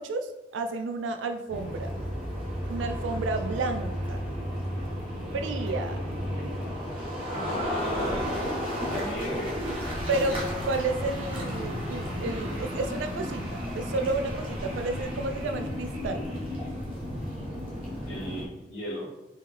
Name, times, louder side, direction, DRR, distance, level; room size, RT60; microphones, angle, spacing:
voice 1, 0.0-1.9 2.7-4.2 5.3-6.0 10.1-13.4 13.7-16.3, right 3 dB, 80° right, 7 dB, 0.3 m, -31 dB
sound 1, 1.5-18.4, equal, 30° right, 0.9 m, -33 dB
voice 2, 7.3-8.4 8.8-9.6 18.0-19.1, equal, 45° left, -8 dB, 0.8 m, -35 dB
3.6 x 2.8 x 3.4 m, 0.97 s
head